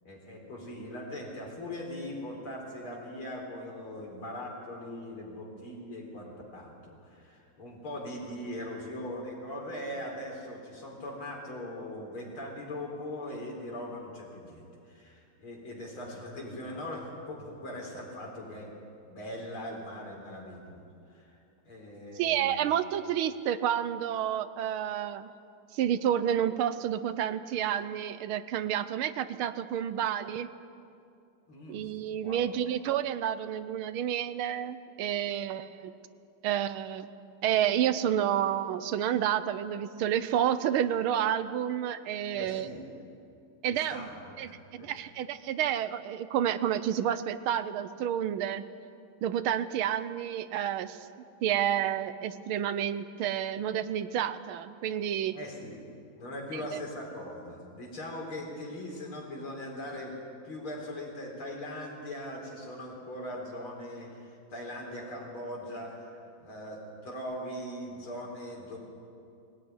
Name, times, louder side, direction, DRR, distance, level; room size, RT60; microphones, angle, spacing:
voice 1, 0.0-18.7 19.0-20.8 21.1-22.7 31.5-31.9 32.2-32.5 42.3-42.8 43.7-44.9 55.3-55.8 56.1-60.2 60.4-68.8, left 1 dB, 70° left, 0 dB, 4.9 m, -40 dB
voice 2, 22.2-25.3 25.7-30.5 31.7-35.9 36.4-37.1 37.4-42.7 43.6-44.1 44.4-48.6 49.2-51.1 51.4-55.4 56.5-56.8, right 10 dB, 75° right, 13 dB, 1.6 m, -30 dB
20.0 x 17.5 x 9.6 m, 2.5 s
omnidirectional pair, 2.4 m